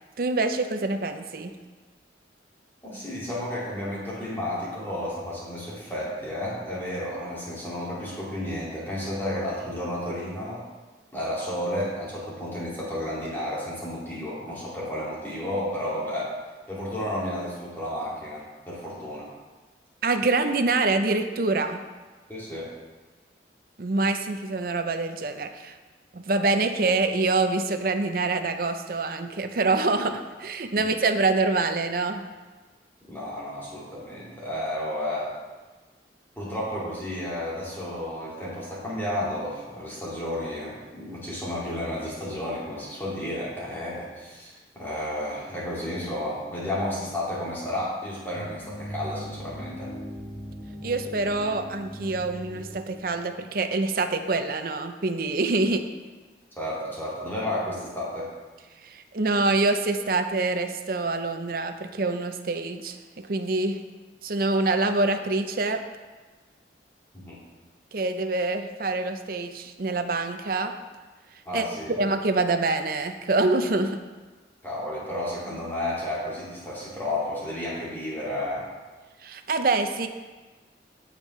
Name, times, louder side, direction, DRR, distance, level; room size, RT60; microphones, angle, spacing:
voice 1, 0.2-1.5 20.0-21.8 23.8-25.8 26.1-32.2 50.8-55.8 58.8-63.8 64.2-65.8 67.9-70.7 71.5-74.0 79.2-80.1, right 3 dB, 50° right, 8 dB, 0.6 m, -25 dB
voice 2, 2.8-10.6 11.1-16.3 16.7-19.3 22.3-22.7 30.8-30.9 33.1-35.3 36.4-49.9 56.6-58.3 67.1-67.4 71.5-72.0 74.6-78.7, left 1 dB, 10° left, -7 dB, 2.2 m, -32 dB
sound 1, 48.3-53.3, equal, 30° left, 1.9 m, -39 dB
15.0 x 5.2 x 3.2 m, 1.3 s
head